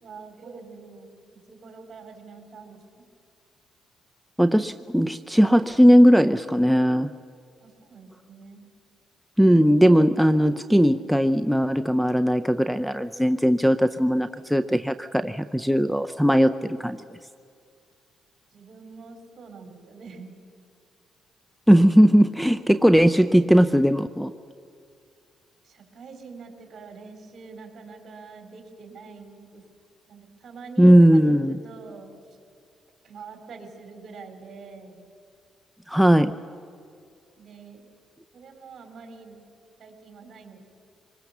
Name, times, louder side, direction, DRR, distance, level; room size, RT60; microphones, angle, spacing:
voice 1, 0.0-3.0 7.6-8.7 18.5-20.3 25.6-29.6 30.1-32.2 33.0-35.1 37.4-37.9 38.3-39.4 39.8-40.6, right 4 dB, 50° right, 5 dB, 3.6 m, -45 dB
voice 2, 4.4-7.1 9.4-16.5 16.8-17.0 21.7-24.3 30.8-31.6 35.9-36.3, equal, ahead, 9 dB, 0.5 m, -18 dB
24.5 x 20.5 x 7.1 m, 2.3 s
cardioid pair, 90°, 0 cm